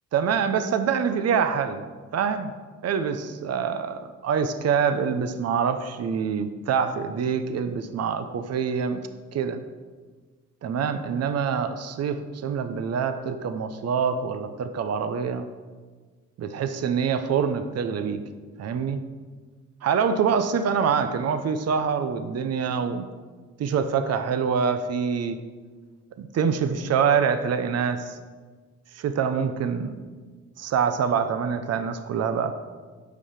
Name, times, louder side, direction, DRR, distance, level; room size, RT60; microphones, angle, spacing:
voice 1, 0.1-1.8 2.1-2.5 2.8-9.0 9.3-9.6 10.6-15.5 16.4-18.2 18.6-19.0 19.8-23.1 23.6-25.4 26.2-28.2 28.9-30.0 30.6-32.5, right 6 dB, 55° right, 10 dB, 0.8 m, -25 dB
8.3 x 5.7 x 6.5 m, 1.4 s
cardioid pair, 90°, 30 cm